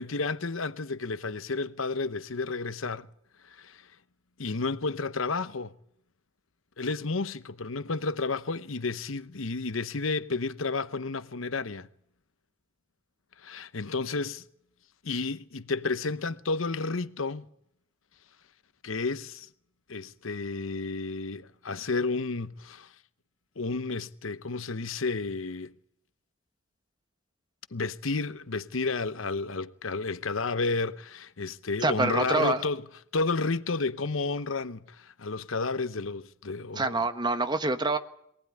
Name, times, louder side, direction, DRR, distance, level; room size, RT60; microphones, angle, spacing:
voice 1, 0.0-3.1 3.4-3.9 4.4-5.7 6.8-11.9 13.4-14.4 15.0-17.4 18.8-19.5 19.9-22.9 23.6-25.7 27.7-37.1, left 3 dB, 85° left, 1.0 m, -31 dB
voice 2, 31.8-32.6 36.8-38.0, right 3 dB, 20° right, 1.2 m, -26 dB
23.0 x 18.0 x 9.7 m
head